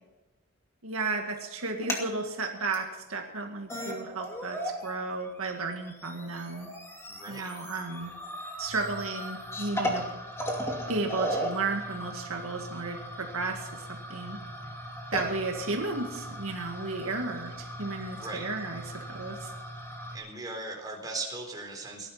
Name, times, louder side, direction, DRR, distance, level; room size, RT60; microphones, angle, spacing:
voice 1, 0.8-6.7 7.3-8.1 8.6-10.0 10.9-14.4 15.1-17.5 17.8-19.5, right 3 dB, 70° right, 2 dB, 2.0 m, -33 dB
sound 1, 1.6-2.1 2.7-2.8 3.4-3.5 3.7-4.9 5.2-20.2, equal, 10° left, 2.5 m, -37 dB
voice 2, 7.1-7.5 15.5-15.8 18.1-18.5 20.1-22.1, right 3 dB, 20° right, 1 dB, 3.9 m, -38 dB
18.5 x 11.5 x 5.8 m, 1.0 s
head